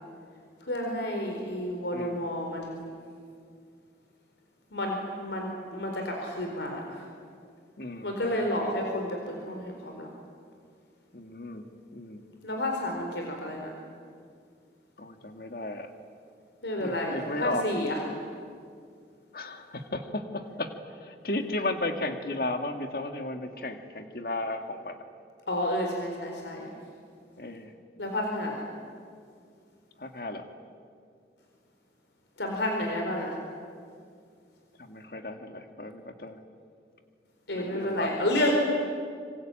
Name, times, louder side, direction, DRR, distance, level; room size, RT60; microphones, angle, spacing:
voice 1, 0.6-3.0 4.7-7.1 8.0-10.1 12.4-13.7 16.6-18.0 25.5-26.7 28.0-28.6 32.4-33.4 37.5-38.5, left 1 dB, 85° left, 2 dB, 4.3 m, -31 dB
voice 2, 7.8-8.7 11.1-11.7 11.9-12.3 15.0-15.9 16.8-17.6 19.3-20.7 21.0-25.0 27.4-27.7 30.0-30.4 34.8-36.4 37.5-38.1, left 2 dB, 55° left, 6 dB, 2.1 m, -34 dB
26.0 x 25.0 x 9.2 m, 2.2 s
head